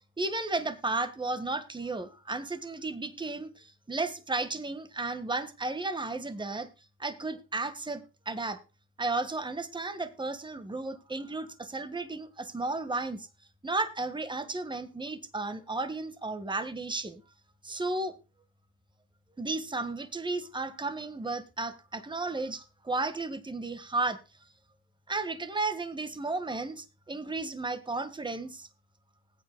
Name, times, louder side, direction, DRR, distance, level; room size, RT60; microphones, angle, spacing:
voice 1, 0.2-6.7 7.0-8.6 9.0-13.3 13.6-17.2 17.6-18.2 19.4-24.2 25.1-28.7, right 3 dB, 15° right, 10 dB, 1.6 m, -33 dB
20.0 x 9.1 x 2.2 m, 0.28 s
cardioid pair, 90°, 30 cm